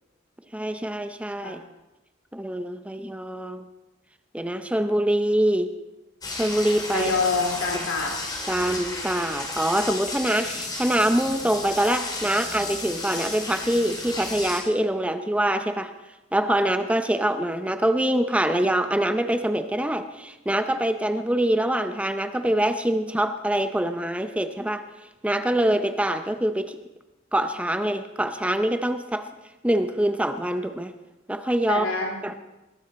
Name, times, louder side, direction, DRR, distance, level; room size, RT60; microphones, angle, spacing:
voice 1, 0.5-1.6 2.3-3.6 4.3-5.7 6.3-7.1 8.5-15.9 16.3-24.8 25.2-26.8 27.3-29.3 29.6-30.9 31.3-31.9 32.2-32.4, right 1 dB, 5° right, 9 dB, 0.6 m, -24 dB
sound 1, 6.2-14.6, left 2 dB, 20° left, 2.7 m, -33 dB
voice 2, 6.9-8.1 31.7-32.1, left 4 dB, 85° left, 2 dB, 3.2 m, -26 dB
21.0 x 13.0 x 4.2 m, 1.0 s
head